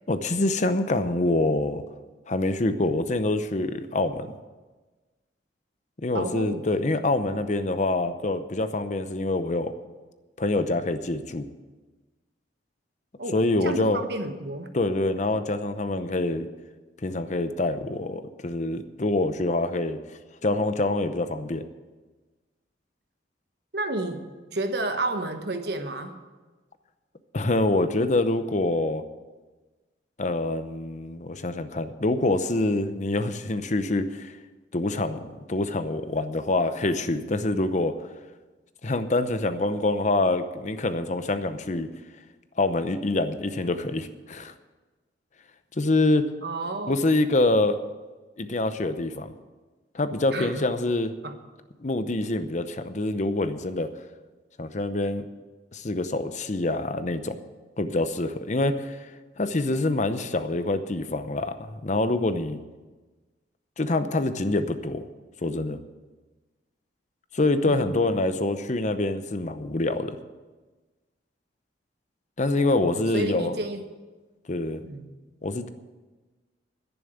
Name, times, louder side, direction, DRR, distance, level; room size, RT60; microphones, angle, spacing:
voice 1, 0.1-1.8 2.3-4.3 6.0-9.7 10.4-11.5 13.3-14.0 14.7-16.5 17.0-20.0 20.4-21.6 27.3-29.0 30.2-34.3 34.7-37.9 38.8-41.9 42.6-44.5 45.8-46.3 46.9-47.8 48.4-49.3 49.9-51.1 51.8-53.9 54.6-55.2 55.7-57.4 57.8-59.1 59.4-62.6 63.8-65.0 65.4-65.8 67.3-70.2 72.4-73.6 74.5-74.8 75.4-75.7, left 2 dB, 40° left, 10 dB, 0.7 m, -25 dB
voice 2, 6.1-6.6 13.2-14.7 23.7-26.2 46.4-47.0 50.3-50.7 51.2-51.3 67.6-68.0 72.5-73.8 74.8-75.1, right 2 dB, 60° right, 6 dB, 1.3 m, -31 dB
11.0 x 10.5 x 7.9 m, 1.3 s
head